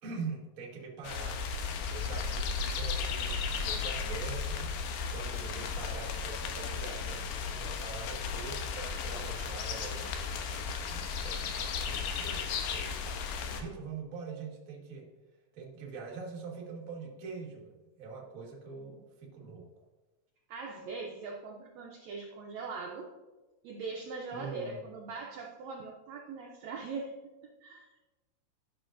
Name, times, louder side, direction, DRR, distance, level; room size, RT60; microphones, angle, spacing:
voice 1, 0.0-1.4 1.9-4.7 5.1-10.1 10.4-11.6 11.8-15.1 15.5-19.7 24.3-24.8, right 4 dB, 55° right, -2 dB, 0.9 m, -44 dB
sound 1, 1.0-13.6, left 5 dB, 85° left, 2.4 m, -35 dB
voice 2, 20.5-23.1 23.6-27.1 27.4-28.0, right 4 dB, 80° right, 0 dB, 1.6 m, -41 dB
13.0 x 6.0 x 2.5 m, 1.1 s
omnidirectional pair, 4.0 m